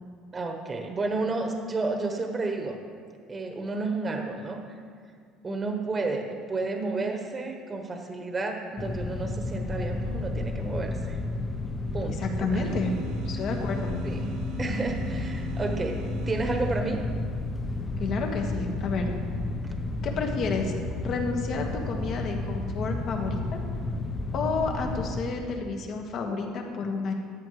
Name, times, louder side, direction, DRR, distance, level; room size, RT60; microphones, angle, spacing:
voice 1, 0.3-2.8 3.3-4.6 5.4-11.2 11.9-12.7 14.0-14.2 14.6-16.0 16.3-17.0 19.6-19.7, right 3 dB, 25° right, 3 dB, 1.2 m, -31 dB
sound 1, 8.8-25.2, left 2 dB, 25° left, 0.8 m, -32 dB
voice 2, 12.2-12.9 13.2-13.9 18.0-19.1 20.0-20.7 21.0-23.6 24.3-27.1, left 4 dB, 55° left, 2 dB, 1.6 m, -30 dB
sound 2, 12.6-17.3, right 2 dB, 70° right, 1.4 m, -41 dB
14.0 x 9.8 x 3.2 m, 2.1 s
supercardioid pair, 100°, 0 cm